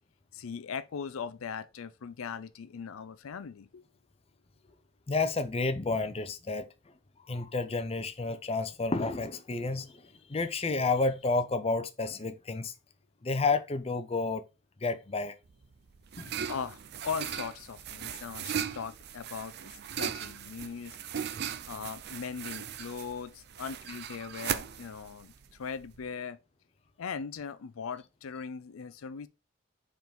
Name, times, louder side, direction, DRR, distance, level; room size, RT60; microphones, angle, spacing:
voice 1, 0.3-3.8 16.5-21.0 21.7-25.3 25.6-26.4 27.0-29.3, left 6 dB, 85° left, 0.5 m, -39 dB
voice 2, 5.1-6.7 7.3-10.0 10.3-12.7 13.2-14.4 14.8-15.3 16.2-16.4, left 3 dB, 30° left, 0.6 m, -30 dB
sound 1, 15.5-26.1, right 8 dB, 50° right, 0.5 m, -38 dB
4.7 x 3.9 x 5.1 m
head